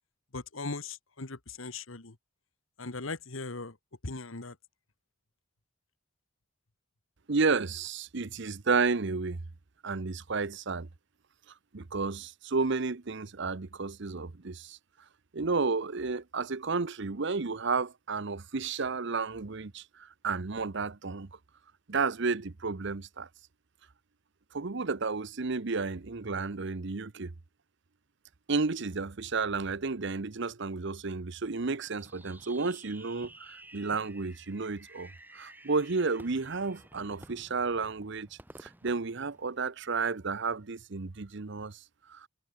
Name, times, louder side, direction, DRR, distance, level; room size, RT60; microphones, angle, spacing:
voice 1, 0.3-2.1 2.8-3.7 4.0-4.5, left 3 dB, 75° left, 1.7 m, -39 dB
voice 2, 7.3-9.4 9.8-10.9 11.7-14.8 15.3-21.3 21.9-23.3 24.5-27.3 28.5-38.3 38.6-41.8 42.1-42.3, right 4 dB, 60° right, 0.8 m, -32 dB
Fireworks, 31.9-40.0, right 1 dB, 10° right, 3.7 m, -53 dB
head